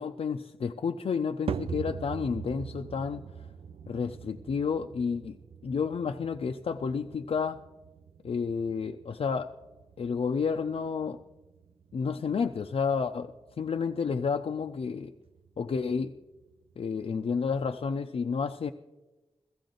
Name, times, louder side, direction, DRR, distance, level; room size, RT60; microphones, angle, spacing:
voice 1, 0.0-3.2 3.9-5.4 5.6-7.6 8.2-9.5 10.0-11.2 11.9-13.3 13.6-15.1 15.6-16.1 16.8-18.7, left 5 dB, 70° left, 4 dB, 0.5 m, -30 dB
sound 1, 1.5-17.9, right 6 dB, 65° right, 0.5 m, -44 dB
15.5 x 15.0 x 3.9 m, 1.1 s
cardioid pair, 50°, 10 cm